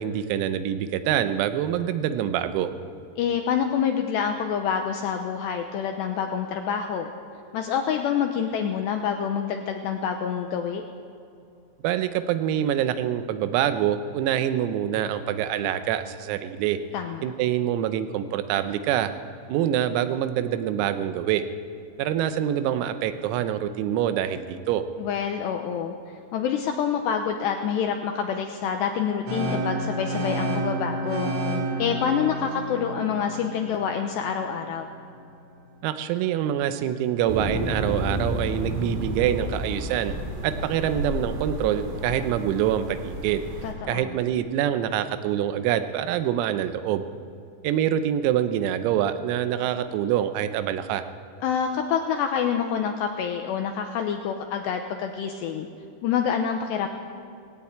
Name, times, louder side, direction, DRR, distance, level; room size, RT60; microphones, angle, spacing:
voice 1, 0.0-2.7 11.8-16.8 17.2-19.1 19.5-21.4 22.0-24.8 35.8-40.1 40.4-43.4 43.9-47.0 47.6-51.0, right 10 dB, 90° right, 10 dB, 3.7 m, -25 dB
voice 2, 3.2-7.1 7.5-10.8 16.9-17.3 25.0-25.9 26.3-31.3 31.8-34.9 43.6-44.2 51.4-55.7 56.0-56.9, left 7 dB, 80° left, 5 dB, 2.5 m, -27 dB
sound 1, 29.3-35.2, right 1 dB, 40° right, 2.9 m, -30 dB
sound 2, 37.3-43.7, equal, 70° right, 4.9 m, -31 dB
19.0 x 16.5 x 8.6 m, 2.5 s
omnidirectional pair, 6.0 m